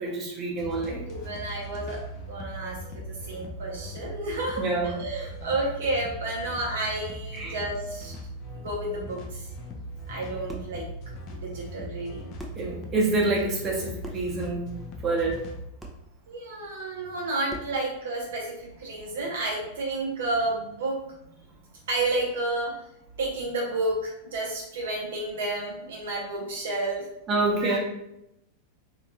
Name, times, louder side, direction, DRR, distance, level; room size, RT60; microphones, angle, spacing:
voice 1, 0.0-1.0 4.6-4.9 7.3-7.5 12.6-14.6 15.0-15.4 27.3-27.8, right 2 dB, 25° right, -2 dB, 0.9 m, -27 dB
sound 1, 0.6-15.6, equal, 40° left, 0.6 m, -39 dB
voice 2, 1.1-2.0 2.3-8.1 8.5-9.5 10.1-10.9 11.3-12.3 16.3-21.0 21.9-22.7 23.2-27.1 27.6-27.8, right 2 dB, 60° right, -2 dB, 0.7 m, -31 dB
sound 2, 10.5-10.8 12.0-12.1 12.4-12.7 14.0-14.4 15.8-16.1 17.5-17.8, right 2 dB, 5° right, 0.6 m, -41 dB
3.4 x 3.0 x 2.8 m, 0.83 s
figure-of-eight pair, 90°, 0 cm